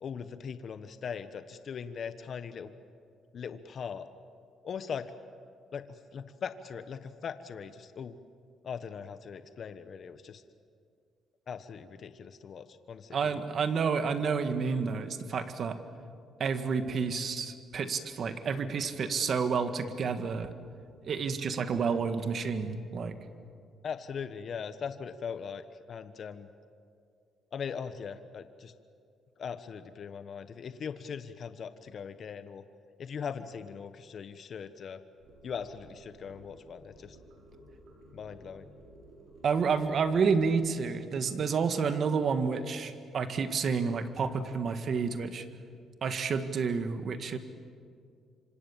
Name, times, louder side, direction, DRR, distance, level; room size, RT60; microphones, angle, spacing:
voice 1, 0.0-2.7 3.3-4.1 4.6-5.1 5.7-5.9 6.1-8.2 8.6-10.4 11.5-13.4 23.8-26.5 27.5-28.7 29.4-32.6 33.0-35.0 35.4-37.2 38.1-38.7, left 6 dB, 55° left, 11 dB, 1.1 m, -40 dB
voice 2, 13.1-15.8 16.4-20.5 21.0-23.2 39.4-45.4 46.0-47.4, right 5 dB, 55° right, 9 dB, 1.9 m, -30 dB
sound 1, 35.2-40.6, right 1 dB, 80° right, 6.9 m, -54 dB
26.5 x 26.0 x 7.4 m, 2.3 s
cardioid pair, 90°, 0 cm